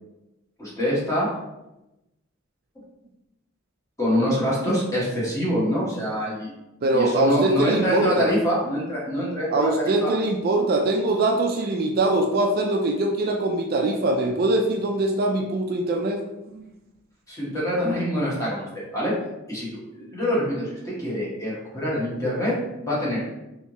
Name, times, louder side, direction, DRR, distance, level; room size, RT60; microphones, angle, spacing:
voice 1, 0.6-1.3 4.0-6.5 6.9-10.1 17.3-19.1 19.5-22.5 22.8-23.3, equal, 15° left, -7 dB, 1.2 m, -25 dB
voice 2, 6.8-8.3 9.5-16.7, right 2 dB, 45° right, 2 dB, 0.3 m, -22 dB
3.3 x 2.7 x 2.9 m, 0.94 s
head